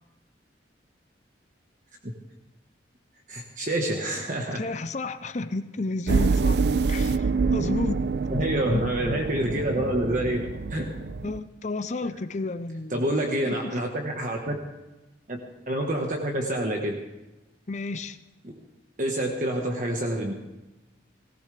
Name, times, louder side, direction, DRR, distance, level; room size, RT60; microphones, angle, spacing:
voice 1, 3.3-4.6 6.1-6.2 8.3-10.8 12.9-14.6 15.3-17.1 18.4-18.6 19.0-20.4, right 1 dB, 45° right, 1 dB, 1.4 m, -27 dB
voice 2, 4.5-6.6 6.9-8.0 8.7-9.6 11.2-13.0 13.5-13.7 17.7-18.2, left 3 dB, 40° left, 11 dB, 0.6 m, -32 dB
sound 1, 6.1-11.4, right 4 dB, 60° right, 0.4 m, -26 dB
19.0 x 17.0 x 3.4 m, 1.1 s
head